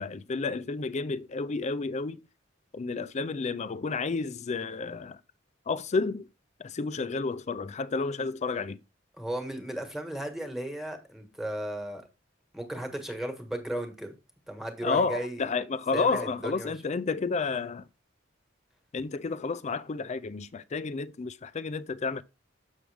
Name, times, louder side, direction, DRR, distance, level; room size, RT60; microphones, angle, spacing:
voice 1, 0.0-2.2 2.7-5.2 5.7-6.3 6.6-8.8 14.8-17.8 18.9-22.2, left 4 dB, 35° left, 0.4 m, -31 dB
voice 2, 9.2-12.0 12.5-14.1 14.5-15.4 15.9-16.7, right 1 dB, ahead, 1.5 m, -35 dB
7.2 x 6.3 x 3.4 m
head